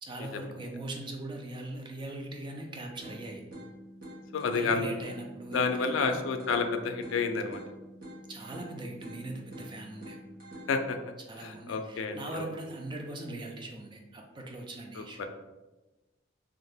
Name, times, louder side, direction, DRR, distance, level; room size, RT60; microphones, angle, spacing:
voice 1, 0.0-3.4 4.5-6.2 8.3-10.2 11.3-15.2, right 2 dB, 25° right, 2 dB, 0.4 m, -40 dB
sound 1, 3.0-11.0, equal, 50° right, 1.0 m, -47 dB
voice 2, 4.3-4.9 5.5-7.6 10.7-11.0 11.4-12.5 15.0-15.3, left 4 dB, 85° left, 6 dB, 0.3 m, -30 dB
2.8 x 2.4 x 3.3 m, 1.1 s
head